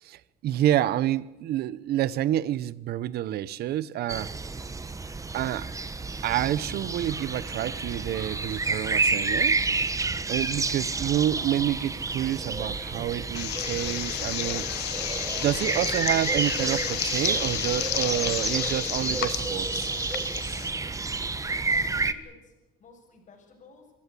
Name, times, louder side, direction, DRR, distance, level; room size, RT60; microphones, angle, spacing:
voice 1, 0.0-4.3 5.3-5.7 6.2-9.6 10.3-14.7 15.4-19.9, right 12 dB, 70° right, 0.9 m, -28 dB
sound 1, 4.1-22.1, right 3 dB, 20° right, 1.4 m, -30 dB
sound 2, 13.3-20.7, left 14 dB, 75° left, 1.3 m, -32 dB
voice 2, 21.3-22.5 22.8-23.9, left 4 dB, 45° left, 7.2 m, -53 dB
26.5 x 16.0 x 8.4 m
cardioid pair, 110°, 17 cm